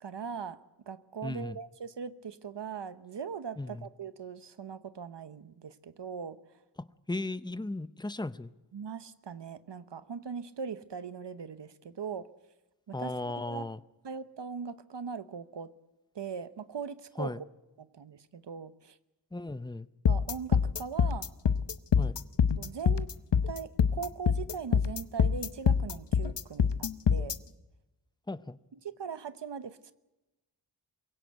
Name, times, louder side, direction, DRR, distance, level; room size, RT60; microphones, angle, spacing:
voice 1, 0.0-6.4 8.7-12.3 12.9-13.7 14.0-15.7 16.1-17.4 17.8-19.0 20.1-21.3 22.0-22.1 22.6-23.1 23.5-27.4 28.8-29.9, right 6 dB, 75° right, 13 dB, 1.0 m, -40 dB
voice 2, 1.2-1.6 3.6-3.9 7.1-8.5 12.9-13.8 17.2-17.4 19.3-19.9 22.0-22.2 28.3-28.6, left 2 dB, 10° left, 15 dB, 0.6 m, -36 dB
sound 1, 20.1-27.4, left 7 dB, 80° left, 0.9 m, -25 dB
23.0 x 16.5 x 8.0 m, 1.0 s
wide cardioid pair, 75°, 42 cm